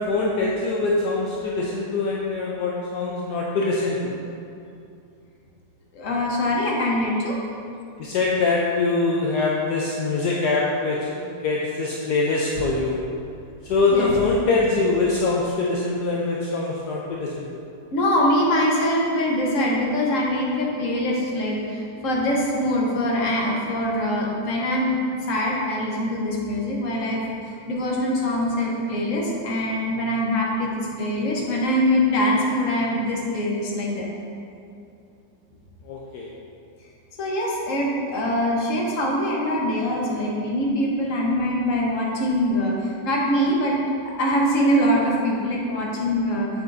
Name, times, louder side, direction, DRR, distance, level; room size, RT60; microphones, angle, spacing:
voice 1, 0.0-4.1 8.0-13.0 13.6-17.5 35.8-36.3, left 3 dB, 70° left, -3 dB, 1.2 m, -23 dB
voice 2, 5.9-7.4 13.9-14.1 17.9-25.0 25.3-34.1 37.2-43.8 44.2-46.5, equal, 50° left, -3 dB, 1.4 m, -23 dB
7.7 x 7.4 x 2.6 m, 2.6 s
omnidirectional pair, 1.9 m